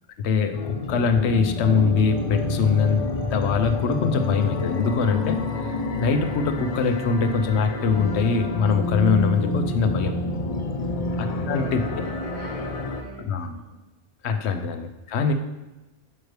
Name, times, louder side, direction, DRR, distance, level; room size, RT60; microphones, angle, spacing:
voice 1, 0.2-3.0 3.3-10.2 11.2-11.8 13.2-13.6 14.2-15.3, left 5 dB, 85° left, 7 dB, 0.9 m, -23 dB
sound 1, 0.5-13.0, left 2 dB, 45° left, 0.5 m, -28 dB
voice 2, 10.2-13.7, right 2 dB, 70° right, -8 dB, 2.8 m, -43 dB
6.5 x 5.8 x 3.1 m, 1.1 s
omnidirectional pair, 1.1 m